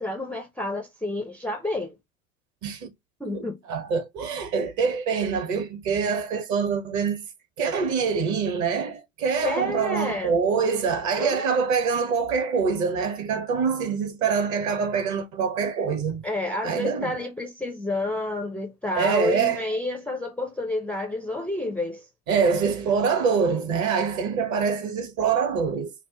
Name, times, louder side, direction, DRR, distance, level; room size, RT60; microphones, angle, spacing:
voice 1, 0.0-2.0 3.2-3.6 9.4-10.4 11.2-11.4 16.2-22.1, left 2 dB, 5° left, 0.4 m, -29 dB
voice 2, 3.3-7.2 7.6-16.2 16.6-17.1 18.9-19.7 22.3-25.9, right 5 dB, 45° right, 1.1 m, -25 dB
4.5 x 2.1 x 2.8 m
figure-of-eight pair, 80°, 42 cm